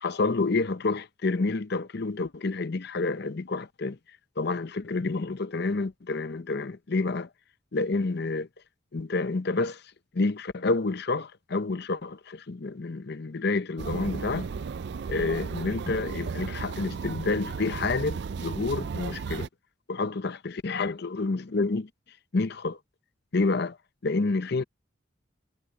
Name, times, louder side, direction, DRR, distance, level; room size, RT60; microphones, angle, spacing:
voice 1, 0.0-4.0 4.4-7.3 7.7-8.5 8.9-9.8 10.1-14.5 15.1-19.5 19.9-21.9 22.3-22.8 23.3-23.8 24.0-24.6, left 3 dB, 50° left, 0.7 m, -29 dB
sound 1, 13.8-19.5, right 5 dB, 55° right, 0.4 m, -34 dB
head